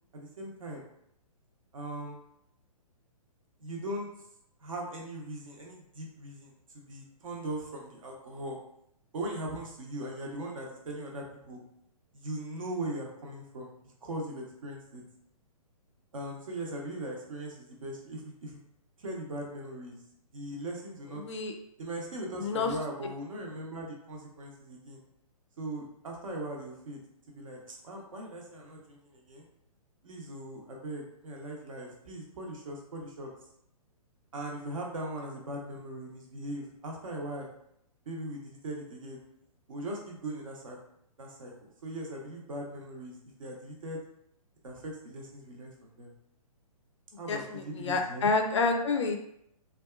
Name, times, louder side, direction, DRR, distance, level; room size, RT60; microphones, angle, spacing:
voice 1, 0.1-0.8 1.7-2.2 3.6-4.1 4.6-8.6 9.1-11.6 12.1-15.0 16.1-18.6 19.0-20.0 20.3-21.2 21.8-25.0 25.6-27.0 27.3-29.4 30.0-33.3 34.3-37.5 38.1-39.2 39.7-40.8 41.2-41.5 41.8-44.0 44.6-46.1 47.2-48.3, right 1 dB, 60° right, -1 dB, 0.7 m, -39 dB
voice 2, 47.8-49.2, left 4 dB, 50° left, 5 dB, 0.4 m, -27 dB
2.7 x 2.3 x 2.2 m, 0.75 s
figure-of-eight pair, 125°, 19 cm